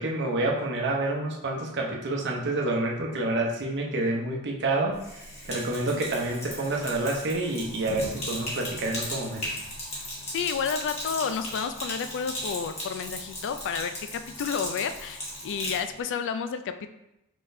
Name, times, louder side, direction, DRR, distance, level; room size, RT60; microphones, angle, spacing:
voice 1, 0.0-5.0 5.5-9.5, right 2 dB, 55° right, 0 dB, 0.8 m, -28 dB
Sink (filling or washing), 4.9-15.8, equal, 30° left, 1.5 m, -37 dB
voice 2, 10.3-16.9, left 6 dB, 55° left, 10 dB, 0.3 m, -31 dB
5.0 x 3.8 x 2.6 m, 0.89 s
head